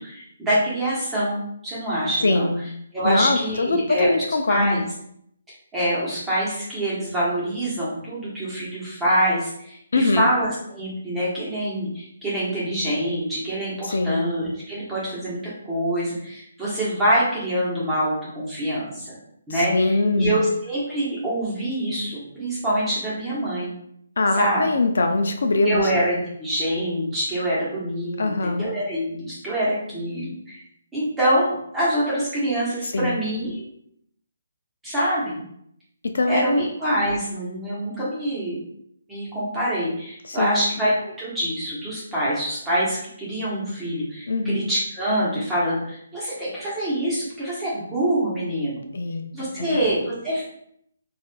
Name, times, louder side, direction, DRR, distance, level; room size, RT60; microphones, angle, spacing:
voice 1, 0.0-2.5 2.9-4.1 4.5-4.8 5.7-15.4 15.6-19.2 19.5-23.7 24.4-24.6 25.6-28.3 28.6-30.6 30.9-33.6 34.8-35.4 36.3-38.6 39.1-48.8 49.3-50.5, right 1 dB, 5° right, -9 dB, 1.0 m, -25 dB
voice 2, 2.2-2.6 3.0-4.8 9.9-10.3 13.8-14.2 19.5-20.4 24.2-25.9 28.2-28.7 32.8-33.2 36.1-36.7 40.2-40.6 44.3-44.6 48.9-49.2 49.6-49.8, left 2 dB, 70° left, 5 dB, 0.4 m, -22 dB
4.1 x 2.4 x 2.2 m, 0.71 s
hypercardioid pair, 170°, 0 cm